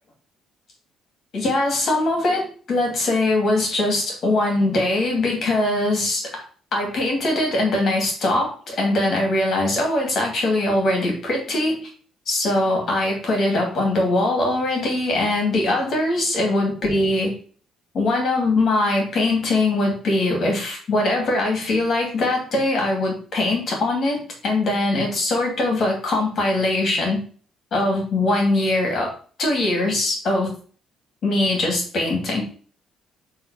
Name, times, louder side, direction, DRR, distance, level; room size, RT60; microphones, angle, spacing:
voice 1, 1.3-6.3 6.7-11.8 12.3-17.3 17.9-27.2 27.7-29.1 29.4-30.5 31.2-32.4, left 2 dB, 40° left, 1 dB, 3.0 m, -21 dB
7.4 x 4.0 x 4.5 m, 0.41 s
cardioid pair, 170°, 0 cm